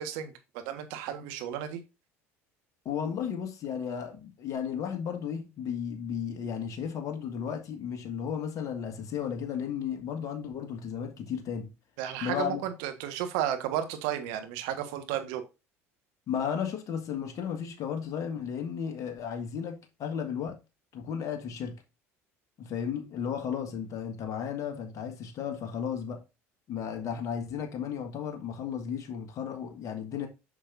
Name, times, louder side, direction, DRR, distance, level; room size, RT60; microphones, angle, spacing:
voice 1, 0.0-1.8 12.0-15.4, right 10 dB, 70° right, 1.5 m, -33 dB
voice 2, 2.8-11.7 12.2-12.6 16.3-20.6 20.9-21.8 22.6-26.2 26.7-30.3, left 8 dB, 45° left, 1.7 m, -34 dB
8.4 x 6.1 x 2.6 m
hypercardioid pair, 70°, 8 cm